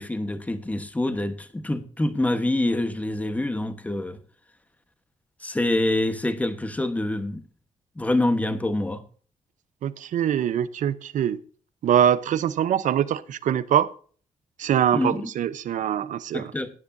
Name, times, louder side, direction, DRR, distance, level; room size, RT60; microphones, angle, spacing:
voice 1, 0.0-4.2 5.4-7.4 8.0-9.0 14.9-15.3 16.3-16.7, left 1 dB, 10° left, 1.3 m, -26 dB
voice 2, 9.8-11.4 11.8-13.9 14.6-16.5, right 10 dB, 80° right, 0.8 m, -23 dB
17.0 x 10.0 x 2.7 m
wide cardioid pair, 140°, 13 cm